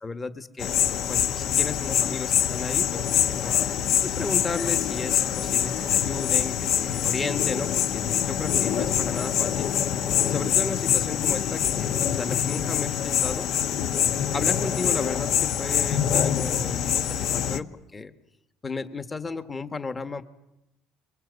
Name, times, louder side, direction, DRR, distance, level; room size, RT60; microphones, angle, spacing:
voice 1, 0.0-3.6 4.0-9.7 10.2-13.5 14.3-18.1 18.6-20.2, left 4 dB, 20° left, 9 dB, 1.6 m, -34 dB
sound 1, 0.6-17.6, left 9 dB, 60° left, 1.3 m, -25 dB
28.5 x 23.5 x 8.3 m, 0.88 s
cardioid pair, 125°, 0 cm